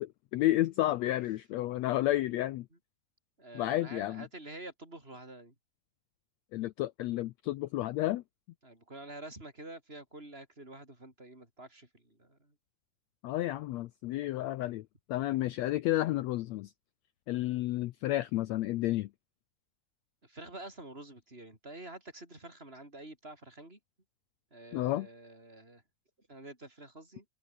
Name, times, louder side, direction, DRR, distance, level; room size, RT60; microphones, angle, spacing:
voice 1, 0.0-2.7 3.5-4.2 6.5-8.2 13.2-14.8 15.1-16.7 17.3-19.1 24.7-25.1, left 15 dB, 80° left, 1.6 m, -31 dB
voice 2, 3.4-5.5 8.6-12.5 20.2-23.8 24.5-25.8 26.3-27.3, right 2 dB, 15° right, 7.2 m, -48 dB
open air
omnidirectional pair, 3.7 m